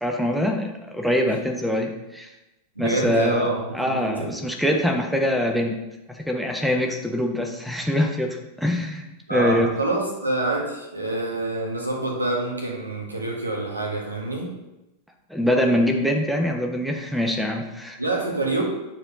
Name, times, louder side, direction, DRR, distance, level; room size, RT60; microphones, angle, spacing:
voice 1, 0.0-2.3 2.8-5.8 6.1-9.7 15.3-18.0, equal, ahead, 3 dB, 0.9 m, -24 dB
voice 2, 2.7-4.3 9.3-14.5 18.0-18.6, right 2 dB, 85° right, -1 dB, 1.5 m, -26 dB
9.8 x 4.5 x 3.9 m, 0.97 s
figure-of-eight pair, 90°, 0 cm